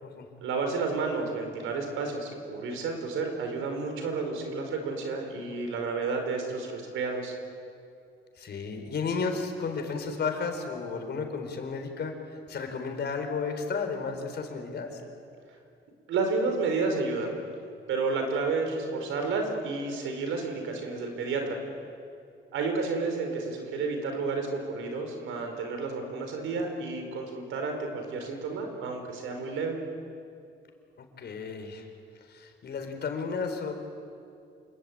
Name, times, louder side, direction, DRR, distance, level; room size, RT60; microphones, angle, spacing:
voice 1, 0.4-7.3 16.1-17.3 17.9-21.6 22.5-29.8, right 4 dB, 85° right, 4 dB, 4.9 m, -31 dB
voice 2, 8.4-15.0 31.2-31.9 32.2-33.7, left 4 dB, 55° left, 5 dB, 4.4 m, -33 dB
27.5 x 21.5 x 8.8 m, 2.4 s
cardioid pair, 90°, 20 cm